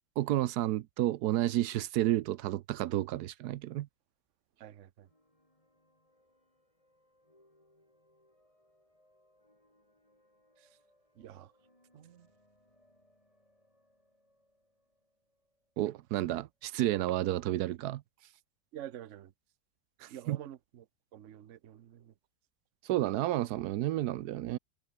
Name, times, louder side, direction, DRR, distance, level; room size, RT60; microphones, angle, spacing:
voice 1, 0.2-3.9 15.8-18.0 20.0-20.4 22.8-24.6, right 14 dB, 85° right, 1.2 m, -31 dB
voice 2, 4.6-5.1 10.6-10.8 11.1-11.5 11.9-12.3 18.7-19.3 20.1-20.9 21.1-22.1, right 11 dB, 55° right, 1.1 m, -48 dB
sound 1, 5.0-16.7, left 1 dB, 20° left, 6.5 m, -70 dB
omnidirectional pair, 1.6 m